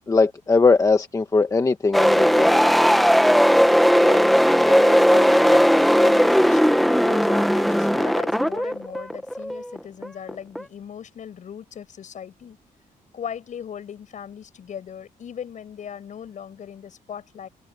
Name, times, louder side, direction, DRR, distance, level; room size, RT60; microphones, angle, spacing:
voice 1, 0.1-2.5, left 4 dB, 25° left, 1.2 m, -19 dB
sound 1, 1.9-10.6, equal, ahead, 1.1 m, -17 dB
voice 2, 4.0-12.6 13.1-17.5, left 8 dB, 60° left, 7.9 m, -38 dB
wide cardioid pair, 150°, 15 cm